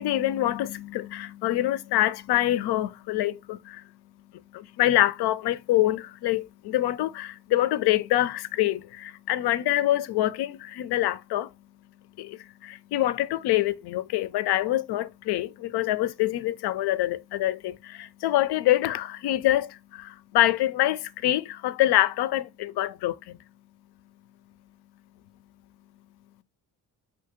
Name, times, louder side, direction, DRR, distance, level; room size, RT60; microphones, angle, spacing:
voice 1, 0.0-3.9 4.5-11.5 12.2-23.4, left 14 dB, 60° left, 0.5 m, -25 dB
2.8 x 2.6 x 3.6 m
hypercardioid pair, 40°, 45 cm